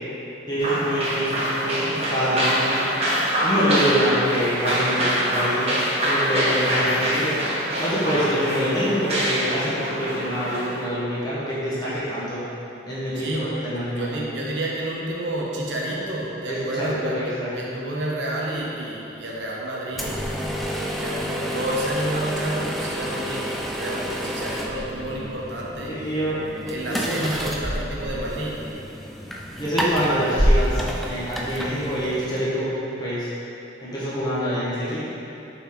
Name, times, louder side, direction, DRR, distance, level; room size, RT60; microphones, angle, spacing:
voice 1, 0.5-2.7 3.4-7.4 7.8-12.4 12.9-14.1 16.5-17.7 25.9-26.4 26.9-27.3 29.6-33.3 33.8-35.0, equal, 20° left, -10 dB, 1.2 m, -26 dB
sound 1, 0.6-10.8, equal, 35° right, 1.2 m, -24 dB
voice 2, 13.1-20.2 20.6-20.7 21.0-26.1 26.7-28.6, right 1 dB, 70° right, -4 dB, 0.9 m, -30 dB
sound 2, 19.9-32.5, equal, ahead, 0.3 m, -28 dB
7.0 x 4.0 x 3.7 m, 2.9 s
head